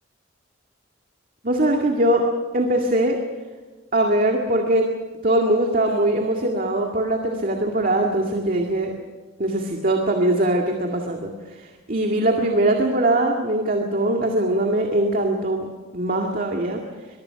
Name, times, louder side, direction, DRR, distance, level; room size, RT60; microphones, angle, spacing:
voice 1, 1.4-2.2 2.5-3.2 3.9-4.9 5.2-8.9 9.4-15.7 15.9-16.8, right 1 dB, 45° right, 2 dB, 2.1 m, -21 dB
23.5 x 23.0 x 5.9 m, 1.3 s
head